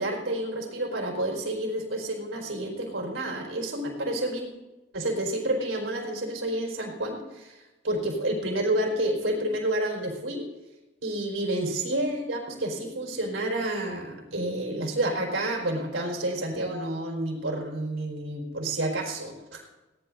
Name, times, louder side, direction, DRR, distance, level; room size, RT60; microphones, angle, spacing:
voice 1, 0.0-4.5 4.9-10.4 11.0-19.7, right 1 dB, 65° right, 1 dB, 4.6 m, -29 dB
22.0 x 18.0 x 2.7 m, 1.1 s
head